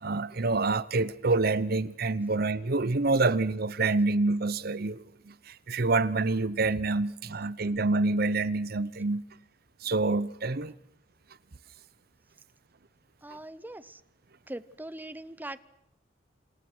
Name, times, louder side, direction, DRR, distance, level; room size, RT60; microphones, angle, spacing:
voice 1, 0.0-9.2 9.8-10.7, right 3 dB, 55° right, 0.9 m, -27 dB
voice 2, 13.2-14.0 14.5-15.6, right 1 dB, 10° right, 0.9 m, -41 dB
28.0 x 28.0 x 6.3 m
head